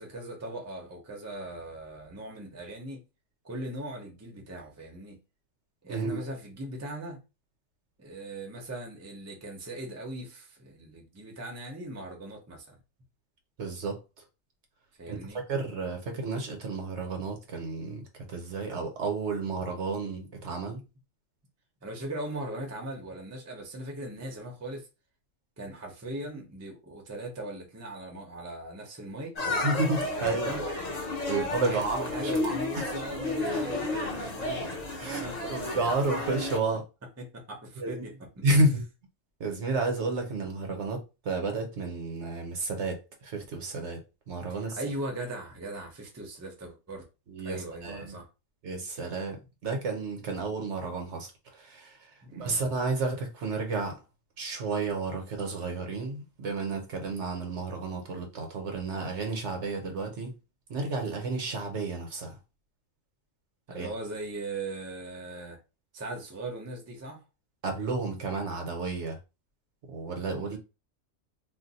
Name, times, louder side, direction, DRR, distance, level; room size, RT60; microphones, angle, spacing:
voice 1, 0.0-3.0 3.4-5.2 5.8-7.2 8.0-12.8 15.0-15.4 21.8-24.9 25.6-29.3 30.2-30.6 31.2-34.6 35.0-35.5 36.6-36.8 37.2-38.4 44.8-47.0 47.4-48.2 52.2-52.6 63.7-65.6 65.9-67.2, right 1 dB, 15° right, 0.6 m, -39 dB
voice 2, 5.9-6.2 13.6-14.0 15.1-15.2 15.5-20.8 29.6-30.7 31.3-32.8 34.9-36.8 37.8-38.0 38.4-38.8 39.4-44.0 44.3-44.8 47.3-48.2 48.6-52.1 52.3-54.0 54.4-60.3 60.7-62.4 63.7-63.9 67.6-69.2 69.9-70.6, right 3 dB, 65° right, 1.1 m, -31 dB
sound 1, 29.4-36.6, left 2 dB, 40° left, 0.7 m, -32 dB
2.5 x 2.1 x 3.9 m
omnidirectional pair, 1.3 m